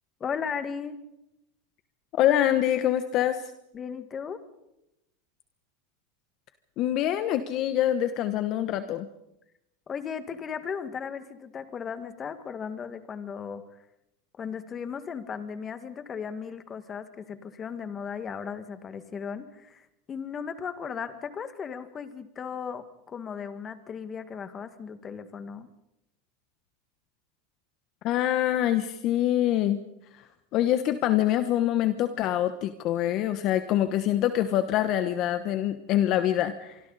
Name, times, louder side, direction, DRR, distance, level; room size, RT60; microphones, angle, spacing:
voice 1, 0.2-1.0 3.7-4.4 9.9-13.6 14.4-25.7, left 6 dB, 25° left, 10 dB, 1.9 m, -36 dB
voice 2, 2.2-3.5 6.8-9.1 28.0-29.8 30.1-30.2 30.5-36.8, left 12 dB, 45° left, 10 dB, 1.1 m, -25 dB
25.5 x 25.0 x 4.1 m, 0.86 s
supercardioid pair, 135°, 0 cm